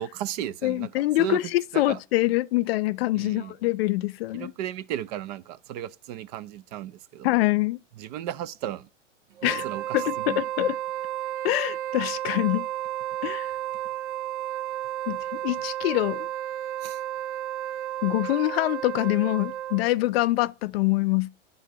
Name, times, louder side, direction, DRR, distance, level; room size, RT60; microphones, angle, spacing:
voice 1, 0.0-1.4 1.7-2.0 3.2-3.5 4.3-7.3 8.0-8.9 9.4-10.0 10.3-10.4 16.8-17.0, right 11 dB, 35° right, 0.4 m, -35 dB
voice 2, 0.6-4.5 7.2-7.8 9.4-9.7 9.9-10.8 11.4-12.7 13.2-13.5 15.1-16.3 18.0-21.3, left 18 dB, 60° left, 0.4 m, -25 dB
Wind instrument woodwind instrument, 9.4-20.0, right 13 dB, 70° right, 0.7 m, -32 dB
9.9 x 3.8 x 6.7 m
hypercardioid pair, 125°, 36 cm